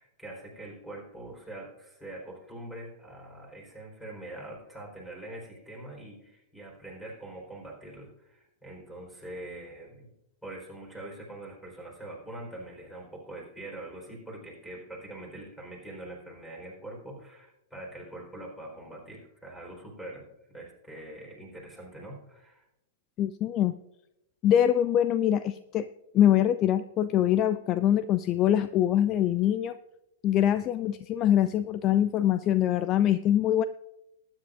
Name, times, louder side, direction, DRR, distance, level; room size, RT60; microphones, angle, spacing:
voice 1, 0.0-10.1 10.4-20.3 20.5-22.6 30.5-30.6, right 1 dB, ahead, 0 dB, 4.1 m, -43 dB
voice 2, 23.2-23.7 24.4-25.9 26.1-29.8 30.2-33.6, left 11 dB, 30° left, 14 dB, 0.4 m, -24 dB
20.0 x 9.7 x 2.5 m, 0.87 s
figure-of-eight pair, 100°, 0 cm